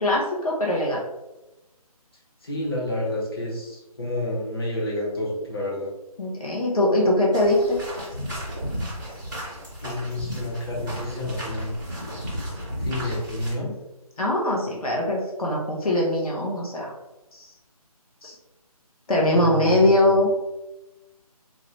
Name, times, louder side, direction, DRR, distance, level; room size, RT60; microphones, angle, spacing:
voice 1, 0.0-1.0 6.2-7.8 14.2-16.9 17.3-17.5 18.2-18.3 19.1-20.3, left 1 dB, 65° left, -2 dB, 0.8 m, -22 dB
voice 2, 2.4-5.9 9.8-11.8 12.8-13.7 19.3-20.1, left 1 dB, 40° left, -5 dB, 0.9 m, -29 dB
sound 1, 7.3-13.5, equal, 5° right, 0.5 m, -33 dB
3.9 x 2.1 x 2.9 m, 1.0 s
hypercardioid pair, 175°, 20 cm